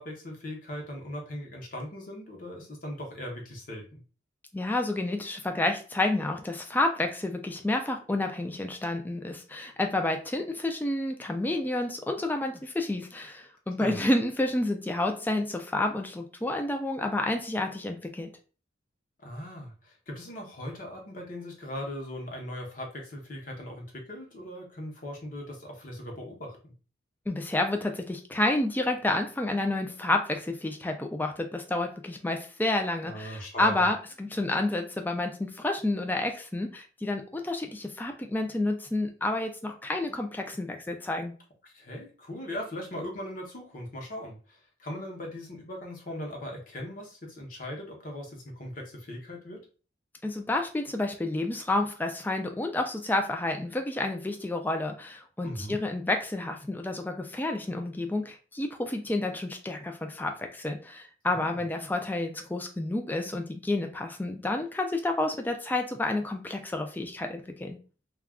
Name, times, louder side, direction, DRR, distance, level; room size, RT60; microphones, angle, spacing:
voice 1, 0.0-4.0 13.8-14.0 19.2-26.7 33.0-33.8 41.6-49.6 55.4-55.8 61.3-61.6, left 1 dB, 45° left, 0 dB, 0.8 m, -39 dB
voice 2, 4.5-18.3 27.3-41.3 50.2-67.8, left 2 dB, 10° left, 4 dB, 0.3 m, -30 dB
2.3 x 2.3 x 3.4 m, 0.36 s
head